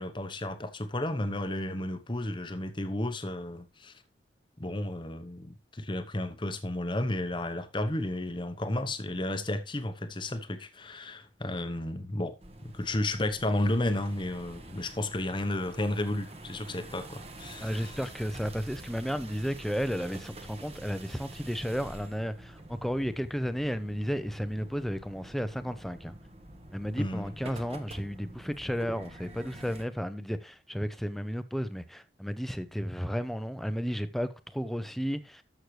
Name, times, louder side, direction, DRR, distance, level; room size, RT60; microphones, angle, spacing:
voice 1, 0.0-4.0 4.6-12.3 12.6-18.0 27.0-27.3, left 1 dB, 25° left, 0.9 m, -32 dB
sound 1, 12.4-29.8, right 1 dB, 30° right, 1.3 m, -47 dB
voice 2, 17.6-26.1 26.7-35.4, equal, ahead, 0.6 m, -33 dB
13.0 x 6.5 x 3.2 m
head